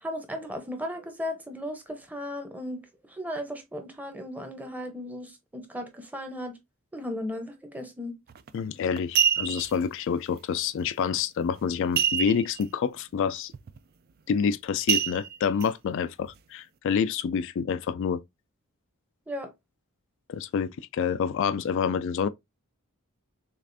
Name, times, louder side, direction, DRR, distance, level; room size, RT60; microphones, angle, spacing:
voice 1, 0.0-2.8 3.1-6.6 6.9-8.1 19.3-19.5, left 1 dB, 5° right, 0.8 m, -36 dB
sound 1, 8.3-8.5 9.0-9.8 12.0-12.6 13.0-13.1 13.5-13.8 14.9-15.7 16.2-16.3, right 8 dB, 45° right, 0.4 m, -26 dB
voice 2, 8.5-13.5 14.3-18.2 20.3-22.3, left 6 dB, 60° left, 0.3 m, -27 dB
6.5 x 2.5 x 2.6 m
head